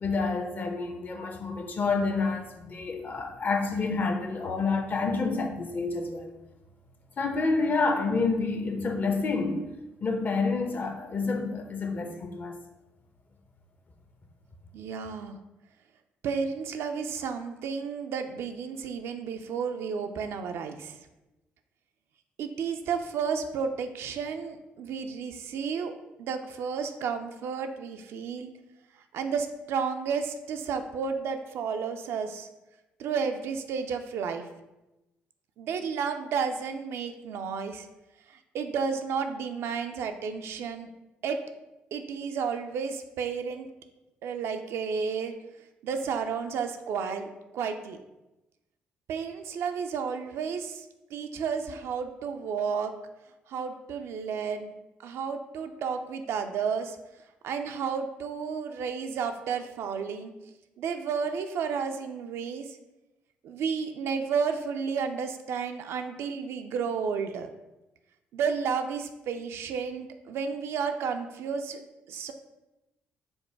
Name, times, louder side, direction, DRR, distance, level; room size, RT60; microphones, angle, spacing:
voice 1, 0.0-6.3 7.2-9.7 10.0-12.6, left 4 dB, 45° left, 0.7 m, -28 dB
voice 2, 14.7-15.4 16.2-20.9 22.4-25.9 26.2-28.5 29.1-32.5 33.0-34.4 35.6-37.9 38.5-40.9 41.2-41.4 41.9-43.7 44.2-45.3 45.8-47.3 47.5-48.0 49.1-50.8 51.1-52.9 53.5-54.7 55.0-57.0 57.4-60.3 60.8-62.7 63.4-67.5 68.3-71.8 72.1-72.3, right 6 dB, 70° right, 0.4 m, -32 dB
5.2 x 2.2 x 4.6 m
hypercardioid pair, 55°, 5 cm